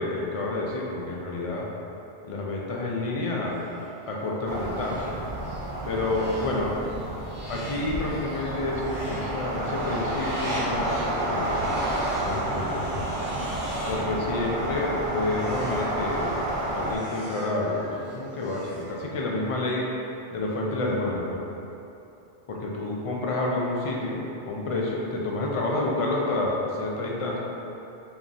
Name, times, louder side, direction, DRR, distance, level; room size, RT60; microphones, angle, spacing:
voice 1, 0.0-1.7 2.2-3.7 4.1-5.2 5.9-6.8 7.5-11.6 12.2-12.9 13.9-16.4 16.7-20.0 20.3-21.4 22.5-27.4, left 2 dB, 65° left, -2 dB, 0.3 m, -29 dB
sound 1, 3.5-19.4, equal, 10° right, 0.8 m, -44 dB
sound 2, 4.4-17.0, right 1 dB, 55° right, 0.5 m, -30 dB
3.5 x 2.9 x 3.9 m, 2.9 s
omnidirectional pair, 1.2 m